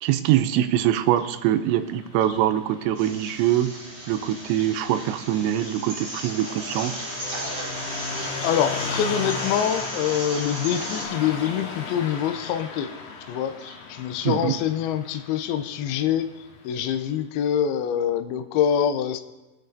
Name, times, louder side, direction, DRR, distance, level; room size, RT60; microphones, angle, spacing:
voice 1, 0.0-3.7 4.1-7.1 14.3-14.5, right 12 dB, 85° right, 9 dB, 2.9 m, -23 dB
Car passing by, 1.0-17.0, left 3 dB, 60° left, 2.2 m, -36 dB
sound 1, 2.9-11.1, right 1 dB, 35° right, 1.8 m, -36 dB
voice 2, 8.4-12.9 13.3-19.2, left 9 dB, 85° left, 9 dB, 2.2 m, -25 dB
22.5 x 7.9 x 2.6 m, 1.1 s
omnidirectional pair, 5.1 m